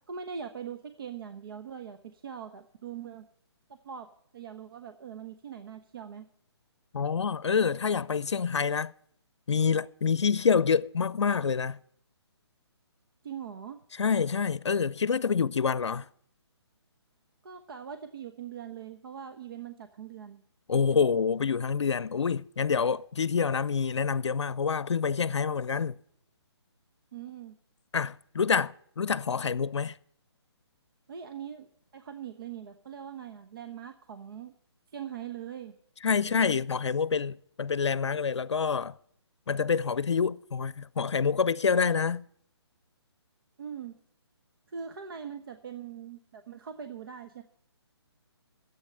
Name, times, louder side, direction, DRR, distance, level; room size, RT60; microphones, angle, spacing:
voice 1, 0.1-3.3 3.8-6.3 13.2-13.8 17.4-20.4 27.1-27.6 31.1-34.5 34.9-35.7 36.2-36.5 43.6-44.0 44.7-47.4, right 7 dB, 55° right, 1.0 m, -42 dB
voice 2, 6.9-8.9 9.5-11.8 13.9-16.1 20.7-25.9 27.9-30.0 36.0-39.0 39.5-42.2, left 6 dB, 90° left, 0.5 m, -27 dB
12.0 x 8.2 x 8.5 m
hypercardioid pair, 155°, 14 cm